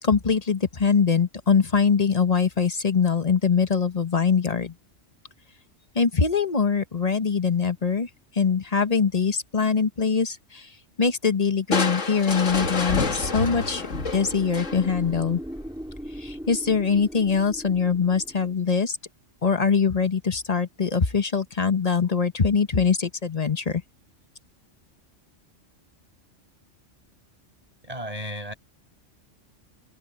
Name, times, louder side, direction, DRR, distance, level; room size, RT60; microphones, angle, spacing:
voice 1, 0.0-4.7 5.9-8.1 8.3-10.7 11.0-13.9 14.1-15.4 16.2-19.0 19.4-23.8, left 5 dB, 35° left, 1.1 m, -23 dB
Crushing, 11.7-15.1, left 3 dB, 85° left, 2.3 m, -28 dB
sound 1, 12.7-18.6, equal, 5° right, 3.1 m, -40 dB
voice 2, 27.8-28.5, equal, 30° right, 6.6 m, -34 dB
omnidirectional pair, 1.3 m